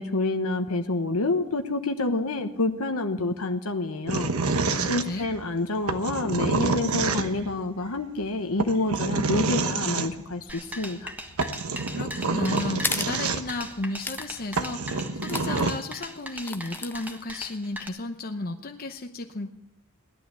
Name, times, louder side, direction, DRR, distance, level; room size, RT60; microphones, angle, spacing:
voice 1, 0.0-4.3 4.9-11.1, left 2 dB, 90° left, 6 dB, 1.2 m, -28 dB
sound 1, 4.1-5.4 5.9-7.5 8.6-10.1 11.0-11.1 11.4-13.7 14.2-14.3 14.6-15.7, right 3 dB, 85° right, 1.1 m, -27 dB
voice 2, 4.8-5.3 11.9-19.5, left 2 dB, 45° left, 5 dB, 0.8 m, -33 dB
sound 2, 10.5-17.9, equal, 10° right, 1.4 m, -39 dB
sound 3, 12.8-13.1 14.0-14.3 14.6-14.7 15.2-15.7 16.3-17.5, left 3 dB, 10° left, 0.5 m, -33 dB
17.0 x 12.0 x 6.9 m, 0.80 s
head